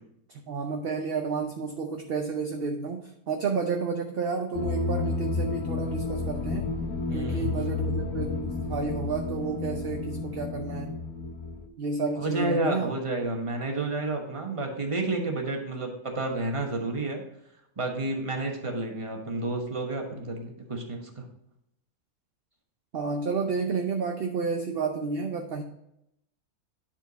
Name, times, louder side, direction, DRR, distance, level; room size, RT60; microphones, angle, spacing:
voice 1, 0.3-6.7 7.1-11.0 11.8-12.9 22.9-25.6, right 5 dB, 55° right, 4 dB, 0.7 m, -31 dB
sound 1, 4.5-11.7, left 3 dB, 80° left, 1.3 m, -31 dB
voice 2, 7.1-7.8 12.2-17.2 17.8-21.2, right 2 dB, 25° right, 2 dB, 1.2 m, -30 dB
10.5 x 4.4 x 4.1 m, 0.81 s
omnidirectional pair, 1.5 m